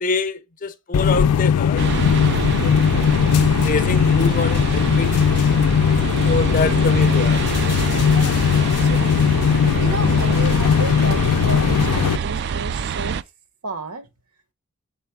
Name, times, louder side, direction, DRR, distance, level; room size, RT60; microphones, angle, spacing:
voice 1, 0.0-1.9 2.6-3.0 3.6-5.4 6.2-7.4, left 3 dB, 35° left, 0.5 m, -25 dB
sound 1, 0.9-12.2, left 7 dB, 90° left, 0.3 m, -18 dB
sound 2, 1.8-13.2, right 6 dB, 50° right, 0.3 m, -26 dB
voice 2, 8.5-9.4 9.8-13.2 13.6-14.1, right 3 dB, 80° right, 1.0 m, -32 dB
6.7 x 4.2 x 4.5 m
head